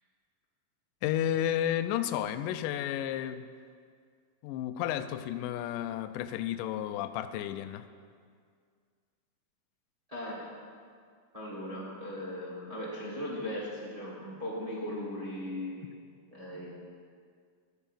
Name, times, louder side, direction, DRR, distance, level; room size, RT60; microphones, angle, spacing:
voice 1, 1.0-3.5 4.4-7.9, left 11 dB, 80° left, 10 dB, 2.0 m, -32 dB
voice 2, 10.1-10.5 11.3-15.8 16.3-16.7, left 1 dB, 15° right, -7 dB, 1.2 m, -38 dB
14.0 x 4.8 x 7.3 m, 2.1 s
omnidirectional pair, 4.1 m